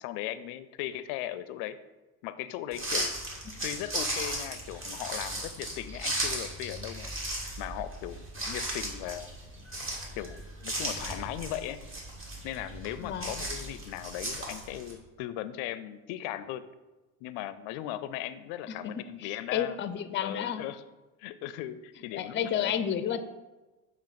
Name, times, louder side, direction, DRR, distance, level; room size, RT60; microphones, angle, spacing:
voice 1, 0.0-1.8 2.2-3.1 3.6-7.1 7.6-9.4 10.2-11.8 12.4-16.6 17.2-19.8 20.2-20.8 21.2-22.8, left 12 dB, 75° left, 14 dB, 0.5 m, -38 dB
sound 1, 2.7-14.9, right 1 dB, 30° right, 1.9 m, -36 dB
voice 2, 13.0-13.3 18.7-20.6 22.1-23.2, left 9 dB, 30° left, 11 dB, 0.5 m, -31 dB
7.0 x 3.1 x 5.8 m, 1.1 s
supercardioid pair, 100°, 40 cm